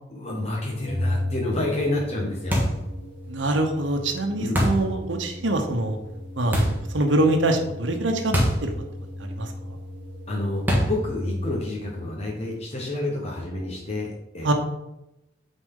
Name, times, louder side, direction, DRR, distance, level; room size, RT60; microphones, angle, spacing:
voice 1, 0.1-2.6 4.4-4.6 10.3-14.5, left 2 dB, 35° left, -2 dB, 1.1 m, -29 dB
Organ, 0.8-11.8, left 1 dB, 5° left, 2.2 m, -35 dB
sound 1, 2.5-2.9 4.5-4.9 6.5-6.9 8.3-8.7 9.0-9.1 10.7-11.1, equal, 10° right, 1.5 m, -23 dB
voice 2, 3.3-6.0 6.4-8.3 8.6-8.7 9.4-9.5 14.4-14.5, right 2 dB, 85° right, 5 dB, 0.9 m, -24 dB
8.6 x 4.1 x 3.8 m, 0.89 s
head